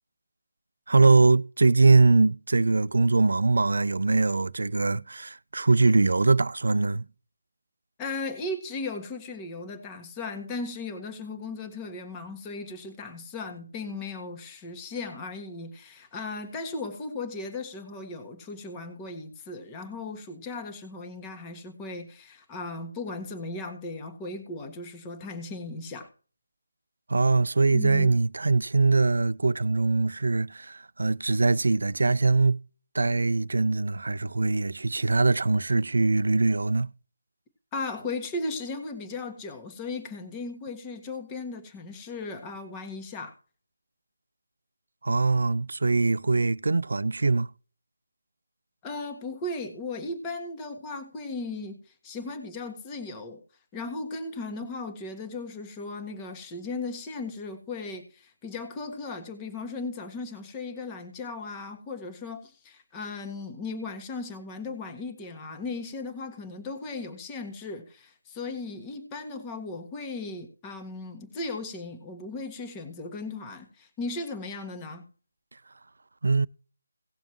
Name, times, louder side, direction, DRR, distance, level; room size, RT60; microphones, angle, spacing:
voice 1, 0.9-7.0 27.1-32.6 32.9-36.9 45.0-47.5 76.2-76.5, right 3 dB, 60° right, 0.5 m, -22 dB
voice 2, 8.0-26.1 27.7-28.1 37.7-43.3 48.8-53.4 53.7-75.0, left 3 dB, 15° left, 1.6 m, -37 dB
18.0 x 7.0 x 3.1 m
figure-of-eight pair, 155°, 0 cm